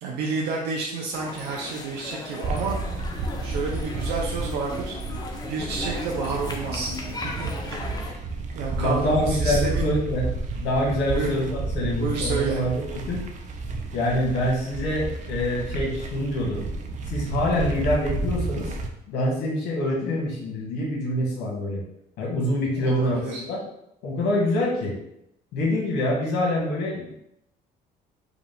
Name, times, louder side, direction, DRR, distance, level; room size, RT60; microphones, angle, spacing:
voice 1, 0.0-2.8 3.4-5.0 5.4-8.3 8.5-9.9 11.1-11.3 11.9-12.6 22.8-23.4, right 4 dB, 80° right, -2 dB, 0.7 m, -30 dB
sound 1, 1.1-8.1, left 3 dB, 25° left, 0.7 m, -37 dB
sound 2, 2.4-18.9, right 3 dB, 45° right, 0.6 m, -31 dB
voice 2, 8.7-10.3 10.6-13.2 13.9-16.6 17.1-18.7 19.1-21.8 22.2-23.6 24.0-24.9 25.5-27.2, left 1 dB, 80° left, -2 dB, 1.5 m, -25 dB
4.9 x 2.4 x 3.5 m, 0.77 s
cardioid pair, 110°, 17 cm